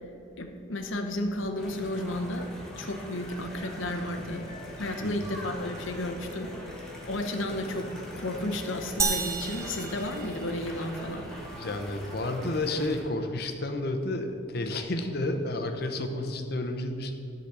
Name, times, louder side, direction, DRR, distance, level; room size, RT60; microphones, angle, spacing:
voice 1, 0.4-4.4 4.8-6.5 7.1-11.3, left 1 dB, 80° left, 5 dB, 1.0 m, -33 dB
sound 1, 1.6-13.0, equal, 5° left, 1.3 m, -42 dB
sound 2, 4.3-9.5, left 1 dB, 35° left, 1.5 m, -49 dB
sound 3, 9.0-10.9, right 5 dB, 15° right, 0.4 m, -31 dB
voice 2, 11.6-17.1, left 2 dB, 50° left, 5 dB, 0.8 m, -31 dB
11.5 x 4.1 x 7.2 m, 2.8 s
head